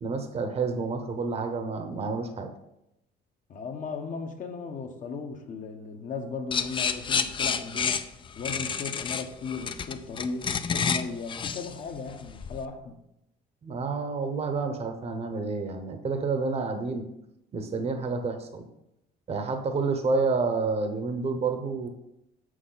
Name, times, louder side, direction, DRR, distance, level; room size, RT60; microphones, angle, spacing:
voice 1, 0.0-2.5 13.6-17.0 17.5-18.6 19.3-21.9, right 4 dB, 40° right, 0.9 m, -29 dB
voice 2, 3.5-8.0 8.4-13.0, left 4 dB, 50° left, 1.1 m, -36 dB
sound 1, 6.5-12.6, left 6 dB, 30° left, 0.4 m, -30 dB
7.2 x 6.3 x 4.0 m
cardioid pair, 110°, 17 cm